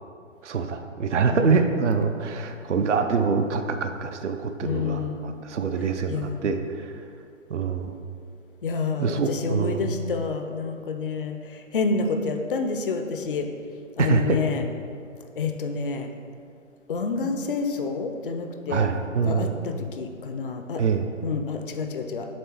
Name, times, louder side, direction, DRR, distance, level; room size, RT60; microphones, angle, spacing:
voice 1, 0.4-6.9 7.5-7.9 9.0-9.9 14.0-14.4 18.7-19.6 20.8-21.1, right 5 dB, 65° right, 7 dB, 0.6 m, -25 dB
voice 2, 1.3-1.6 4.6-5.4 6.1-6.5 8.6-13.5 14.0-14.6 15.4-16.1 16.9-18.9 19.2-20.8 21.2-22.3, left 4 dB, 45° left, 6 dB, 0.5 m, -28 dB
7.4 x 3.2 x 4.4 m, 2.3 s
figure-of-eight pair, 135°, 39 cm